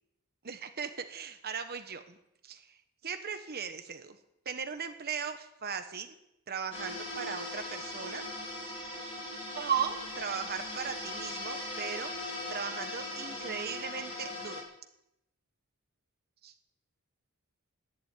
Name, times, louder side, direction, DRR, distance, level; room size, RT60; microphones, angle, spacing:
voice 1, 0.4-2.2 2.4-2.8 3.0-4.2 4.4-6.2 6.5-8.2 9.6-12.1 12.5-14.6 16.4-16.5, right 7 dB, 45° right, 8 dB, 1.1 m, -37 dB
sound 1, 6.7-14.6, left 1 dB, 25° left, 3.7 m, -39 dB
11.5 x 11.0 x 9.1 m, 0.84 s
head